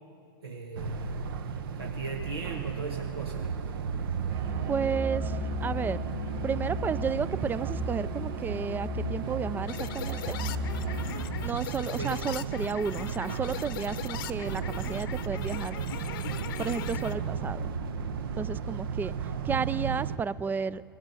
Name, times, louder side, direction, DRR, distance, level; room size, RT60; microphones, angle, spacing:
voice 1, 0.4-1.2 1.7-3.5 12.0-12.2 19.1-19.5, right 4 dB, 90° right, 0 dB, 1.6 m, -37 dB
sound 1, 0.7-20.2, right 6 dB, 70° right, 0.9 m, -35 dB
Musical instrument, 4.3-11.2, right 1 dB, 50° right, 3.5 m, -35 dB
voice 2, 4.7-6.1 6.4-10.4 11.4-15.8 16.6-17.6 18.4-19.1 19.4-20.8, right 6 dB, 15° right, 19 dB, 0.4 m, -32 dB
sound 2, 9.7-17.1, left 11 dB, 65° left, 0.9 m, -40 dB
20.5 x 15.5 x 8.4 m, 2.4 s
hypercardioid pair, 105°, 12 cm